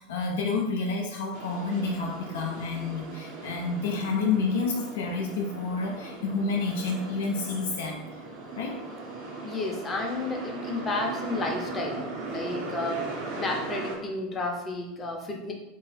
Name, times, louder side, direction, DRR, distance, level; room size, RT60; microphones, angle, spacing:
voice 1, 0.0-8.0 8.6-8.8, left 4 dB, 65° left, 0 dB, 0.4 m, -29 dB
sound 1, 1.3-14.0, right 3 dB, 50° right, 0.7 m, -38 dB
voice 2, 9.4-12.0 12.3-13.0 13.4-15.5, left 2 dB, 25° left, 0 dB, 0.6 m, -31 dB
3.0 x 2.3 x 3.2 m, 0.95 s
figure-of-eight pair, 80°, 0 cm